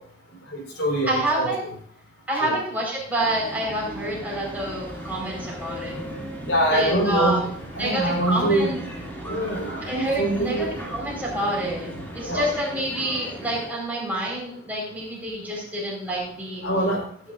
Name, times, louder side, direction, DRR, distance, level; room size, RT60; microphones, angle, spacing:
voice 1, 0.5-1.1 1.4-1.5 2.4-2.5 6.5-8.7 9.3-10.6 12.2-12.5 16.6-17.0, right 1 dB, 90° left, 0 dB, 4.5 m, -24 dB
voice 2, 1.1-1.6 2.3-5.9 6.7-7.4 7.8-8.8 9.8-11.9 12.1-16.6, right 1 dB, 10° right, -4 dB, 4.8 m, -27 dB
sound 1, 3.2-13.7, right 1 dB, 10° left, 2.7 m, -38 dB
sound 2, 3.6-12.6, left 1 dB, 45° left, 4.5 m, -44 dB
18.5 x 9.6 x 2.6 m, 0.62 s
head